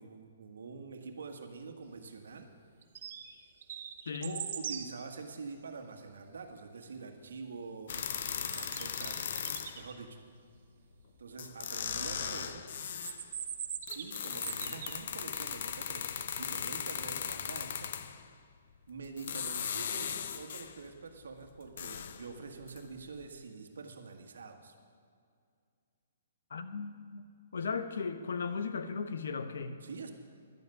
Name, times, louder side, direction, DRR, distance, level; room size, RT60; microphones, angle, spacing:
voice 1, 0.0-2.5 4.2-9.3 9.7-10.2 11.2-12.6 13.9-17.9 18.9-24.7 29.8-30.1, right 4 dB, 90° right, 5 dB, 1.6 m, -46 dB
sound 1, 2.8-3.4 3.6-4.9 8.2-9.9 12.8-15.1, right 8 dB, 50° right, 1.0 m, -41 dB
voice 2, 4.1-4.4 26.5-27.2 27.5-29.8, left 5 dB, 80° left, 10 dB, 1.0 m, -36 dB
sound 2, 7.9-9.9 11.0-11.1 11.4-13.2 13.9-18.3 19.0-20.8 21.2-22.9 23.2-23.3, left 8 dB, 55° left, 0.7 m, -38 dB
11.5 x 7.7 x 9.4 m, 2.3 s
hypercardioid pair, 165°, 0 cm